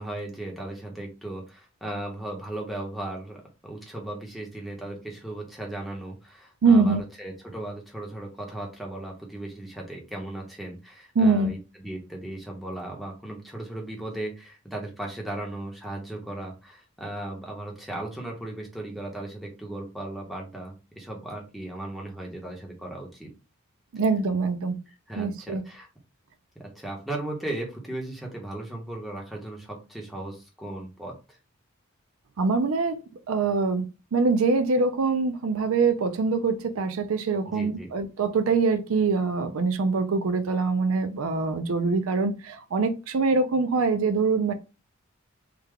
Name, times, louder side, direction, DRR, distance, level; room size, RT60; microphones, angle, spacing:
voice 1, 0.0-23.3 24.9-25.9 26.8-31.4 37.5-37.9, right 1 dB, ahead, 0.8 m, -36 dB
voice 2, 6.6-7.0 11.2-11.5 23.9-24.8 25.2-25.6 32.4-33.9 34.1-44.5, right 4 dB, 80° right, 0.5 m, -24 dB
3.3 x 2.2 x 3.5 m
head